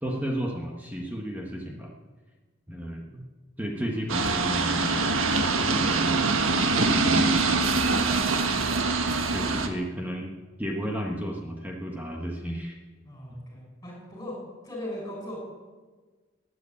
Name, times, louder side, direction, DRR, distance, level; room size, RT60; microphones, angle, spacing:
voice 1, 0.0-1.9 2.7-3.2 3.6-6.3 6.6-7.7 9.3-10.3 10.6-12.8 13.3-13.5, equal, 10° right, 0 dB, 1.3 m, -33 dB
sound 1, 4.1-9.7, right 3 dB, 85° right, 1.5 m, -24 dB
voice 2, 13.0-14.3 14.6-15.4, left 1 dB, 15° left, -1 dB, 6.4 m, -39 dB
17.0 x 9.7 x 8.5 m, 1.4 s
head